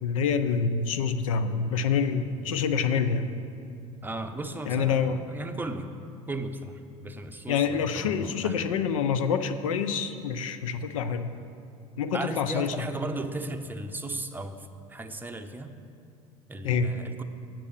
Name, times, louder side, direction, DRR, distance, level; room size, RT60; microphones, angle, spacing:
voice 1, 0.0-3.3 4.7-5.2 7.5-11.3 12.0-12.9 16.6-16.9, left 6 dB, 85° left, 10 dB, 0.5 m, -27 dB
voice 2, 4.0-5.9 6.3-8.7 12.1-15.7 16.5-17.2, right 2 dB, 10° right, 6 dB, 0.7 m, -36 dB
8.3 x 6.0 x 6.6 m, 2.5 s
hypercardioid pair, 75°, 17 cm